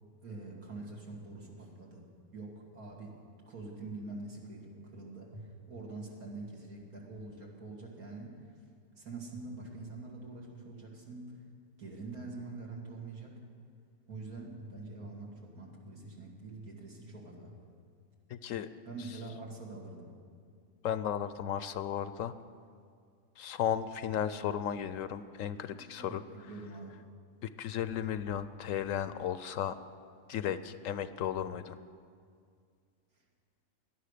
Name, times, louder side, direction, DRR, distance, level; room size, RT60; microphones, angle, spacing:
voice 1, 0.2-2.1 2.3-3.2 3.5-8.3 9.0-11.3 11.8-13.4 14.1-17.5 18.9-20.2 25.7-27.0, right 3 dB, 80° right, -2 dB, 2.9 m, -45 dB
voice 2, 18.3-18.7 20.8-22.3 23.4-26.5 27.4-29.8 30.3-31.8, left 9 dB, 70° left, 13 dB, 0.9 m, -35 dB
17.0 x 11.5 x 6.6 m, 2.2 s
omnidirectional pair, 1.5 m